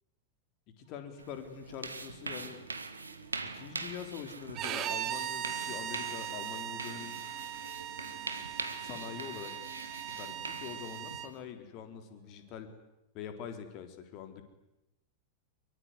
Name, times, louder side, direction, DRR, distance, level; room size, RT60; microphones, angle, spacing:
voice 1, 0.8-2.6 3.4-7.2 8.8-9.5 10.2-12.7 13.1-14.4, left 8 dB, 40° left, 8 dB, 3.9 m, -44 dB
sound 1, 0.9-12.8, right 7 dB, 60° right, 3.8 m, -57 dB
sound 2, 1.2-11.4, right 3 dB, 80° right, 1.8 m, -43 dB
Bowed string instrument, 4.5-11.3, right 11 dB, 35° right, 1.4 m, -39 dB
24.0 x 23.0 x 9.8 m, 0.90 s
figure-of-eight pair, 90°, 0 cm